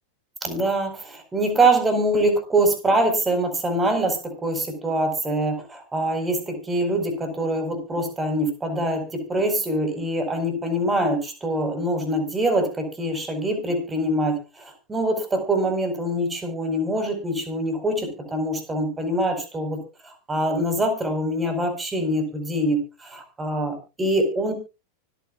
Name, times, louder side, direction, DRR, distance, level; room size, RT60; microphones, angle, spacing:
voice 1, 0.4-19.8 20.3-24.5, right 1 dB, 15° right, 6 dB, 4.6 m, -24 dB
24.5 x 9.4 x 2.4 m, 0.29 s
figure-of-eight pair, 90°, 0 cm